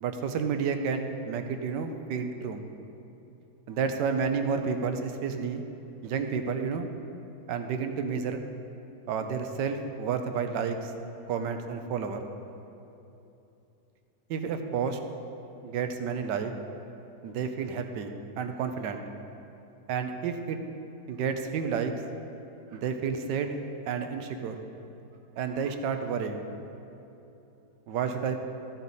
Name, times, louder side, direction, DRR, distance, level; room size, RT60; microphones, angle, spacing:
voice 1, 0.0-2.6 3.7-5.6 6.0-6.9 7.5-8.4 9.1-10.9 11.3-12.2 14.3-15.0 15.6-16.5 17.2-19.0 19.9-20.6 21.1-21.9 22.7-23.6 23.9-24.6 25.4-26.4 27.9-28.5, right 6 dB, 75° right, 7 dB, 1.3 m, -30 dB
14.5 x 8.3 x 4.1 m, 2.9 s
omnidirectional pair, 2.0 m